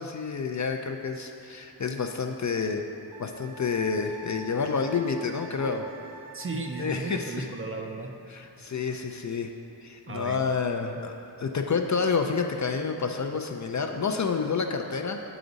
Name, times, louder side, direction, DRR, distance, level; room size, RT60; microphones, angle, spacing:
voice 1, 0.0-2.9 3.2-5.9 6.8-7.5 8.3-9.5 9.8-15.4, left 5 dB, 45° left, 4 dB, 0.4 m, -29 dB
Wind instrument woodwind instrument, 3.1-7.4, right 2 dB, 80° right, 0.6 m, -46 dB
voice 2, 6.3-8.1 10.1-10.5, right 3 dB, 30° right, 3 dB, 0.4 m, -35 dB
7.8 x 5.0 x 3.9 m, 2.9 s
wide cardioid pair, 110°, 43 cm